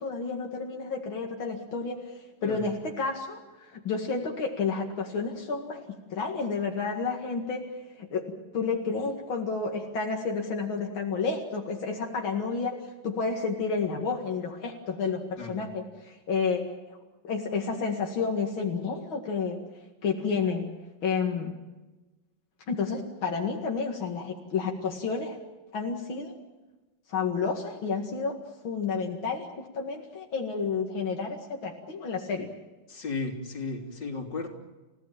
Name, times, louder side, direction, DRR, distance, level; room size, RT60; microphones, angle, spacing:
voice 1, 0.0-2.1 2.4-16.7 17.2-19.6 20.0-20.7 21.0-21.5 22.7-25.4 25.7-26.4 27.1-28.4 28.6-32.5, left 5 dB, 90° left, 1 dB, 2.9 m, -30 dB
voice 2, 32.9-34.5, left 3 dB, 60° left, 2 dB, 4.0 m, -34 dB
30.0 x 16.5 x 7.4 m, 1.1 s
omnidirectional pair, 2.1 m